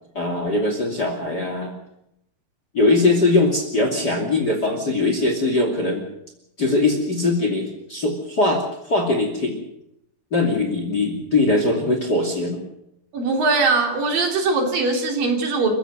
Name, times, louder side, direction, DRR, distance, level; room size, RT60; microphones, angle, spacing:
voice 1, 0.1-1.7 2.7-6.0 6.6-9.6 10.3-12.6, left 2 dB, 30° left, 4 dB, 2.6 m, -21 dB
voice 2, 13.1-15.7, right 3 dB, 60° right, 2 dB, 4.7 m, -21 dB
29.0 x 15.5 x 6.7 m, 0.81 s
omnidirectional pair, 4.6 m